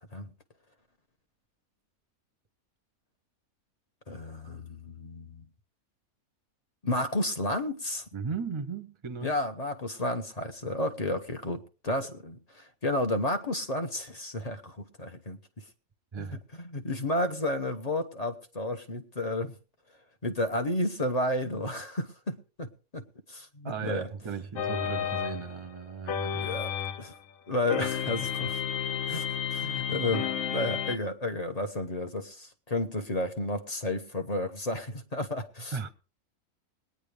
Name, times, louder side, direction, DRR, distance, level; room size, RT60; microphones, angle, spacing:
voice 1, 4.1-5.4 6.8-8.0 9.2-15.4 16.2-16.3 16.6-19.5 20.2-24.1 26.3-26.7 27.0-27.1 27.5-28.6 29.1-35.8, left 1 dB, 30° left, 0.9 m, -32 dB
voice 2, 8.1-9.3 16.1-16.4 23.6-26.5 35.7-35.9, right 6 dB, 25° right, 0.7 m, -36 dB
sound 1, 24.6-27.2 27.7-31.0, left 8 dB, 65° left, 1.1 m, -32 dB
21.0 x 9.7 x 3.3 m
omnidirectional pair, 1.6 m